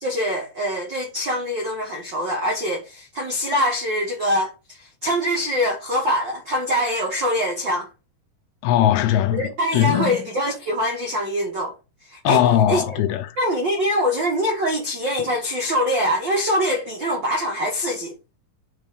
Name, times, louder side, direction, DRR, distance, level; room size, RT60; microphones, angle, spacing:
voice 1, 0.0-7.9 9.3-11.7 12.1-12.4 12.7-12.8 13.4-18.1, equal, 70° right, 1.0 m, -24 dB
voice 2, 8.6-10.3 12.2-13.3 15.2-15.3, left 11 dB, 85° left, 2.7 m, -20 dB
9.3 x 3.5 x 5.1 m
omnidirectional pair, 4.5 m